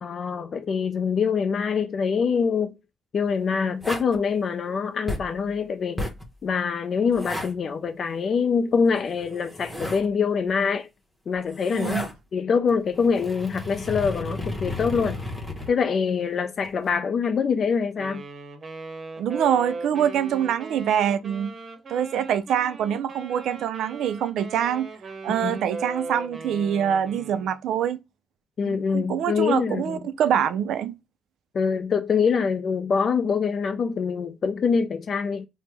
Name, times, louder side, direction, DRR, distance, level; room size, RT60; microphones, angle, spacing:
voice 1, 0.0-2.7 3.1-6.1 6.4-10.9 11.3-12.0 12.3-15.2 15.7-18.2 25.4-25.6 28.6-30.0 31.5-35.5, left 6 dB, 50° left, 0.3 m, -24 dB
sound 1, 3.8-4.2 5.1-5.4 6.0-6.3 7.1-7.5 9.1-10.1 11.3-12.1 12.7-15.7 16.6-16.9, left 1 dB, 5° right, 0.9 m, -33 dB
voice 2, 11.7-12.1 19.2-21.5 21.9-24.9 25.2-28.0 28.7-30.9, right 9 dB, 80° right, 0.3 m, -25 dB
Wind instrument woodwind instrument, 18.0-27.6, right 3 dB, 45° right, 0.7 m, -38 dB
3.3 x 2.0 x 3.1 m
cardioid pair, 90°, 0 cm